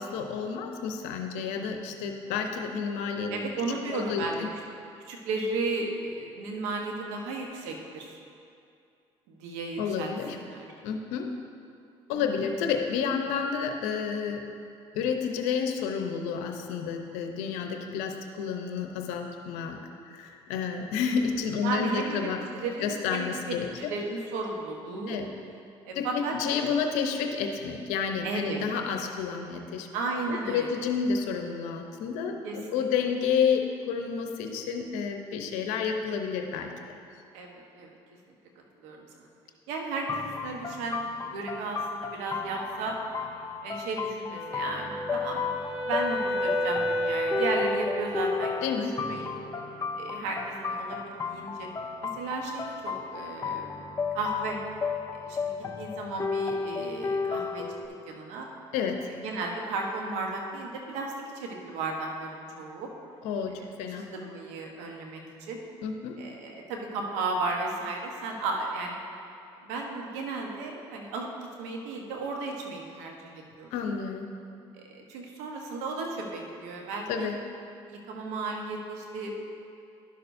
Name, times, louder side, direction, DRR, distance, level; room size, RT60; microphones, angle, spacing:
voice 1, 0.0-3.5 3.9-4.5 9.8-10.4 10.8-11.3 12.1-14.4 14.9-19.8 20.1-22.4 22.8-23.9 25.1-25.3 25.9-29.9 30.3-37.0 48.6-48.9 58.7-59.1 63.2-63.5 63.8-64.1 65.8-66.2 73.7-74.3 77.1-77.3, left 6 dB, 85° left, 4 dB, 0.7 m, -30 dB
voice 2, 3.3-4.4 5.1-8.2 9.3-10.7 12.3-12.5 21.6-25.2 25.8-26.3 28.2-28.6 29.9-30.8 32.4-32.9 37.3-37.9 38.8-39.3 39.7-42.9 43.6-48.5 48.9-49.3 49.9-51.7 52.1-53.8 54.1-54.6 55.1-57.8 58.1-58.5 59.2-62.9 63.5-65.6 66.2-69.0 69.6-71.3 71.6-73.3 73.6-73.7 74.8-77.3 77.9-79.3, right 3 dB, 85° right, 1 dB, 1.1 m, -34 dB
sound 1, 40.1-57.9, left 5 dB, 30° left, 0.5 m, -34 dB
Wind instrument woodwind instrument, 44.3-48.4, equal, 5° right, 1.3 m, -31 dB
11.5 x 6.6 x 2.6 m, 2.5 s
supercardioid pair, 85°, 12 cm